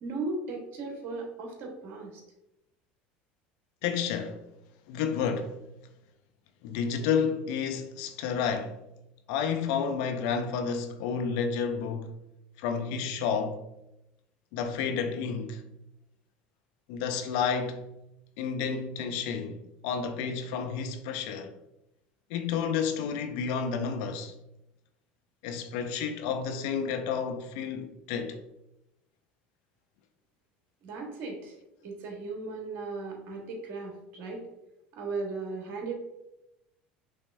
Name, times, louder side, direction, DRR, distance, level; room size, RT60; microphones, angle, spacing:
voice 1, 0.0-2.2 30.8-31.5 31.8-34.4 35.0-35.9, right 3 dB, 55° right, 1.4 m, -36 dB
voice 2, 3.8-4.4 4.9-5.6 6.6-8.8 9.3-12.2 12.6-13.6 14.5-15.6 16.9-17.9 18.4-21.5 22.3-24.3 25.4-28.4, left 6 dB, 70° left, 0.5 m, -31 dB
5.6 x 3.2 x 2.6 m
hypercardioid pair, 80°, 5 cm